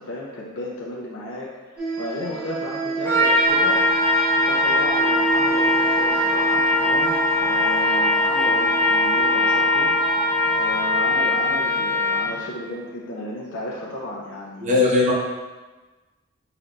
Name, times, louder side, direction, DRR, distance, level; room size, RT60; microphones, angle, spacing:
voice 1, 0.0-3.8 4.5-9.9 10.5-14.8, left 1 dB, 60° left, -4 dB, 0.6 m, -34 dB
sound 1, 1.8-12.2, right 4 dB, 5° right, 1.4 m, -31 dB
Trumpet, 3.1-12.4, left 1 dB, 10° left, 1.3 m, -21 dB
sound 2, 3.5-10.8, left 1 dB, 35° left, 0.9 m, -32 dB
voice 2, 14.6-15.1, left 3 dB, 35° right, -4 dB, 0.9 m, -18 dB
4.5 x 4.2 x 2.5 m, 1.3 s
head